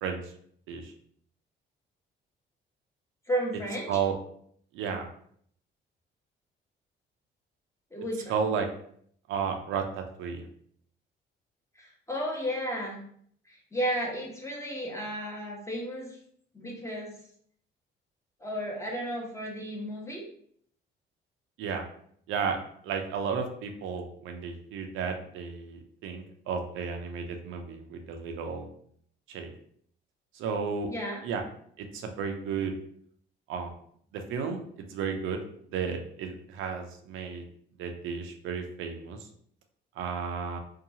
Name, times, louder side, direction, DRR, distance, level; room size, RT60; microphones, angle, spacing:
voice 1, 3.3-3.9 7.9-8.4 11.8-13.0 13.5-16.2 16.5-17.1 18.4-20.2 30.9-31.2, equal, 15° left, -2 dB, 0.9 m, -33 dB
voice 2, 4.7-5.1 8.3-8.7 9.3-10.5 21.6-21.8 22.3-22.6 22.8-28.7 29.3-29.5 30.3-30.9 31.2-31.4 31.8-32.7 33.5-33.7 34.1-35.4 35.7-37.4 37.8-39.2 40.0-40.6, right 6 dB, 90° right, 4 dB, 0.5 m, -33 dB
2.8 x 2.3 x 2.7 m, 0.63 s
cardioid pair, 90°, 20 cm